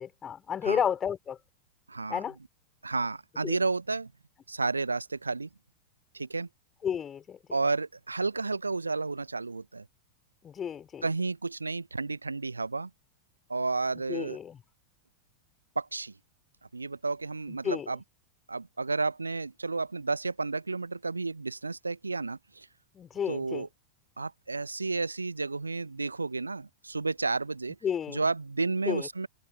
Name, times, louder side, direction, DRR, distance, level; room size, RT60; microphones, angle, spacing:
voice 1, 0.0-1.4 2.1-2.4 3.4-3.6 6.8-7.4 10.4-11.1 14.1-14.6 17.5-17.9 22.9-23.7 27.8-28.2 28.9-29.1, left 8 dB, 25° left, 3.9 m, -32 dB
voice 2, 1.9-2.2 2.8-4.1 4.5-5.5 6.1-6.5 7.5-9.8 11.0-12.9 13.5-14.4 15.7-16.1 16.7-18.0 18.5-22.7 23.3-23.7 24.2-27.8 28.1-29.3, right 3 dB, 80° right, 1.0 m, -31 dB
open air
figure-of-eight pair, 90°, 0 cm